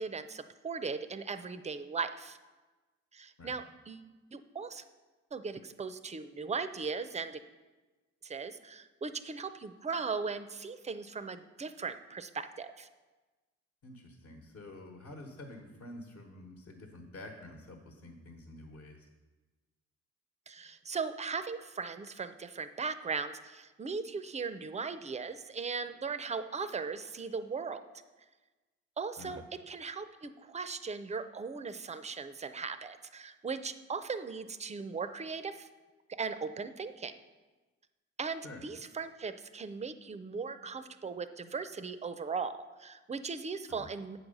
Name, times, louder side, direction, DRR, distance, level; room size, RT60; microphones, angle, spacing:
voice 1, 0.0-2.4 3.1-4.8 5.3-7.4 8.2-12.9 20.5-27.8 29.0-29.4 29.7-35.7 36.1-37.1 38.2-44.2, right 5 dB, 25° right, 11 dB, 0.5 m, -38 dB
voice 2, 13.8-19.1 29.2-29.4 38.4-38.6 43.7-43.9, left 1 dB, 50° left, 2 dB, 1.2 m, -48 dB
8.1 x 4.7 x 6.5 m, 1.2 s
cardioid pair, 90°, 30 cm